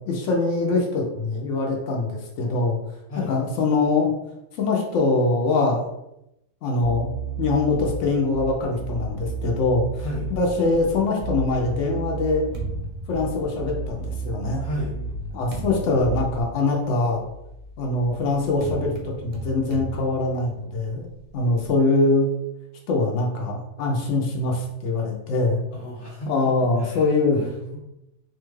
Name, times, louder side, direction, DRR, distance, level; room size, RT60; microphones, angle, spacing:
voice 1, 0.1-2.8 3.3-4.1 4.6-5.8 6.6-7.1 7.4-9.9 10.3-12.5 13.1-14.6 15.3-17.2 17.8-21.1 21.3-22.3 22.9-25.6 26.3-27.4, left 3 dB, 90° left, 0 dB, 0.9 m, -23 dB
Bass guitar, 6.8-16.4, right 4 dB, 85° right, 1.0 m, -32 dB
voice 2, 10.0-10.3 14.6-15.0 25.7-27.8, left 1 dB, 45° left, -3 dB, 1.0 m, -34 dB
sound 1, 12.2-14.0 14.7-21.8, right 2 dB, 55° right, 0.6 m, -38 dB
2.8 x 2.3 x 3.0 m, 0.85 s
omnidirectional pair, 1.2 m